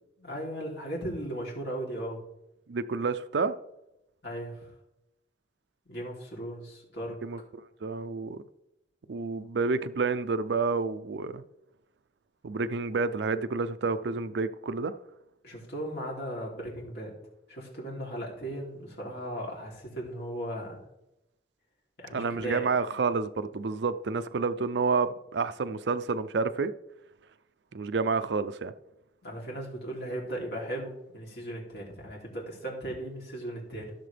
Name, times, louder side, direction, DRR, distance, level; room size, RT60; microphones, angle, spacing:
voice 1, 0.2-2.2 4.2-4.7 5.9-7.2 15.4-17.1 17.5-20.8 22.0-22.7 29.2-33.9, right 1 dB, 65° left, 3.1 m, -37 dB
voice 2, 2.7-3.5 7.2-7.4 7.8-8.4 9.1-11.4 12.4-14.9 22.1-26.7 27.7-28.7, right 4 dB, 80° right, 0.5 m, -29 dB
15.0 x 6.7 x 3.4 m
head